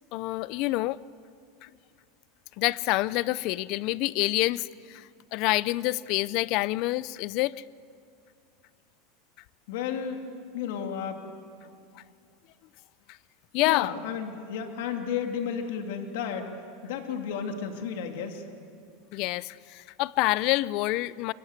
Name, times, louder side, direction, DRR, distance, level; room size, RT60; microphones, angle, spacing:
voice 1, 0.1-1.0 1.6-1.7 2.6-7.5 12.0-12.1 13.5-13.9 19.1-21.3, left 19 dB, 55° left, 20 dB, 0.6 m, -27 dB
voice 2, 9.7-10.2 10.5-11.2 13.6-16.5 16.8-18.4, left 7 dB, 75° left, 4 dB, 2.6 m, -32 dB
25.0 x 24.5 x 8.2 m, 2.3 s
supercardioid pair, 135°, 0 cm